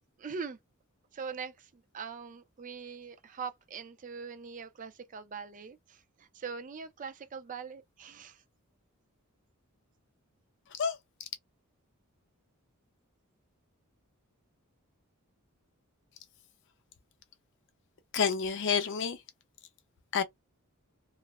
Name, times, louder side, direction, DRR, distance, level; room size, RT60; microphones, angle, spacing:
voice 1, 0.2-0.6 1.1-8.4, right 5 dB, 35° right, 0.4 m, -42 dB
voice 2, 10.8-11.3 18.1-19.2 20.1-20.2, left 6 dB, 55° left, 0.5 m, -29 dB
2.3 x 2.1 x 2.9 m
head